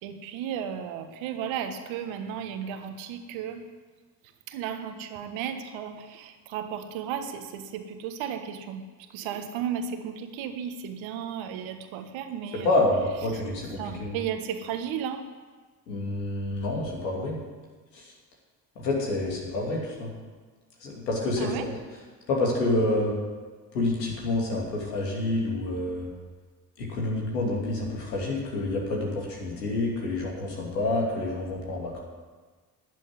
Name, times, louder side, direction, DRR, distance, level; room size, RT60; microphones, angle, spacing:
voice 1, 0.0-3.6 4.5-12.8 13.3-13.4 13.8-15.2 21.4-21.7, right 8 dB, 70° right, 7 dB, 1.5 m, -34 dB
voice 2, 12.6-14.1 15.9-17.4 17.9-18.1 18.8-20.1 20.8-21.7 22.3-23.1 23.7-26.1 26.8-32.0, left 2 dB, 90° left, -2 dB, 2.8 m, -28 dB
11.5 x 7.7 x 9.6 m, 1.4 s
hypercardioid pair, 55°, 48 cm